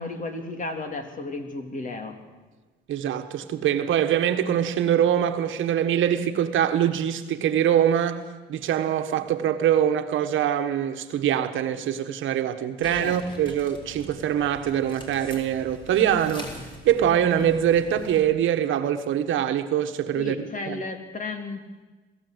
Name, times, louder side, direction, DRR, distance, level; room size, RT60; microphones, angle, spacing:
voice 1, 0.0-2.2 13.0-13.2 20.1-21.9, left 3 dB, 40° left, 3.2 m, -33 dB
voice 2, 2.9-16.5 16.8-20.3 20.7-20.8, right 10 dB, 80° right, 1.4 m, -23 dB
sound 1, 12.8-18.2, equal, 25° left, 4.2 m, -43 dB
22.0 x 14.5 x 8.1 m
cardioid pair, 90°, 20 cm